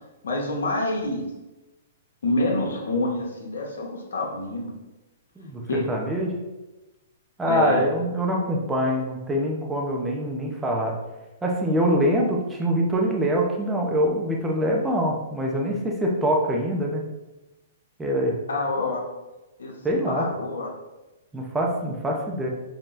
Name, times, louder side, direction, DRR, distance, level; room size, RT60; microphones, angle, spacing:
voice 1, 0.2-1.2 2.2-4.7 5.7-5.9 7.5-7.8 18.5-19.0 19.6-19.7 20.1-20.7, left 2 dB, 85° left, 0 dB, 1.0 m, -27 dB
voice 2, 5.9-6.4 7.4-10.9 11.4-17.0 18.0-18.4 19.8-20.3 21.3-22.5, equal, 10° right, -1 dB, 0.7 m, -24 dB
5.3 x 2.9 x 2.6 m, 1.0 s
hypercardioid pair, 140°, 0 cm